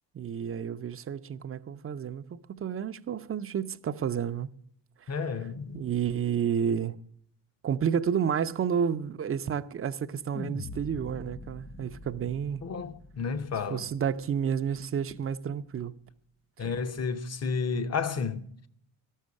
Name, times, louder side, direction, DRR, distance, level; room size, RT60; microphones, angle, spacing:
voice 1, 0.1-4.5 5.0-5.2 5.7-7.0 7.6-12.6 13.7-15.9, right 8 dB, 35° right, 0.6 m, -30 dB
voice 2, 5.1-5.9 12.6-13.9 16.6-18.4, left 5 dB, 40° left, 0.9 m, -31 dB
sound 1, 10.3-14.7, left 3 dB, 15° left, 0.4 m, -43 dB
13.0 x 6.5 x 8.3 m
cardioid pair, 100°, 41 cm